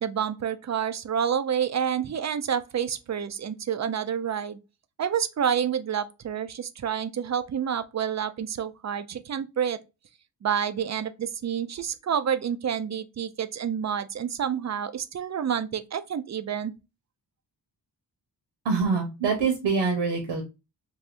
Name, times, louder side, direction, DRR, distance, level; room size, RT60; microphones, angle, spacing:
voice 1, 0.0-4.6 5.0-9.8 10.4-16.7, right 8 dB, 40° right, 0.4 m, -28 dB
voice 2, 18.6-20.4, right 5 dB, 75° right, 0.9 m, -25 dB
3.4 x 2.7 x 2.4 m
cardioid pair, 80°, 44 cm